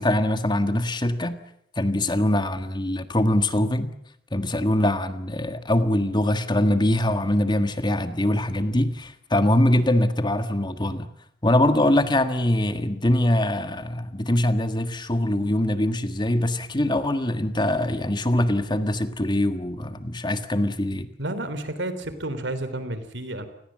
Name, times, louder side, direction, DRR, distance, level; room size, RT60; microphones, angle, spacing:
voice 1, 0.0-1.4 1.7-3.9 4.3-11.1 11.4-21.1, left 1 dB, 25° left, 9 dB, 1.6 m, -23 dB
voice 2, 21.2-23.5, right 1 dB, 75° right, 11 dB, 3.5 m, -31 dB
29.5 x 20.5 x 7.6 m, 0.73 s
head